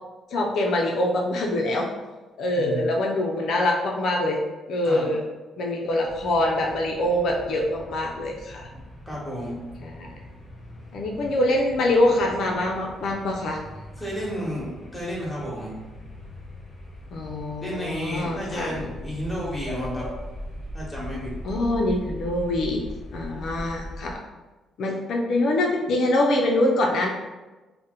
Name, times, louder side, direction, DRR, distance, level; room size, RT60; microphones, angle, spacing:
voice 1, 0.3-1.9 2.4-4.4 4.7-5.2 5.6-8.7 9.8-10.1 10.9-13.6 17.1-18.7 21.4-22.8 23.1-24.1 24.8-27.1, left 1 dB, 70° left, 0 dB, 0.4 m, -24 dB
voice 2, 2.5-2.9 4.8-5.1 9.1-9.6 14.0-15.7 17.6-20.1 20.7-21.3, equal, 10° left, -6 dB, 1.2 m, -32 dB
sound 1, 6.0-24.2, equal, 35° left, 1.2 m, -40 dB
2.8 x 2.0 x 3.7 m, 1.2 s
cardioid pair, 90°, 0 cm